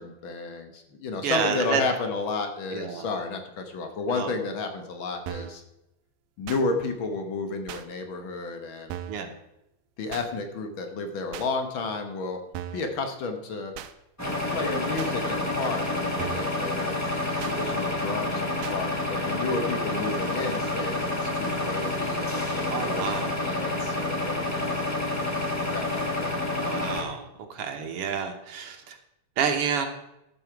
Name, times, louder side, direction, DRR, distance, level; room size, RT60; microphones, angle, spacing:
voice 1, 0.0-5.6 6.4-9.0 10.0-12.4 12.7-13.7 14.2-17.0 17.4-26.3, left 3 dB, 55° left, 6 dB, 1.5 m, -32 dB
voice 2, 1.2-1.8 2.7-3.0 4.1-4.3 9.1-9.3 17.4-17.9 22.7-23.3 26.5-27.2 27.5-29.0 29.4-29.9, right 7 dB, 60° right, 5 dB, 1.7 m, -29 dB
sound 1, 5.3-5.6 6.5-6.6 7.7-7.8 8.9-9.2 10.1-10.3 11.3-11.5 12.5-12.9 13.7-13.9 15.0-15.1 16.2-16.5 17.4-17.6 18.6-18.8, right 11 dB, 80° right, 1.8 m, -37 dB
sound 2, 14.2-27.0, left 2 dB, 10° left, 0.8 m, -29 dB
14.0 x 6.9 x 4.6 m, 0.90 s
omnidirectional pair, 3.3 m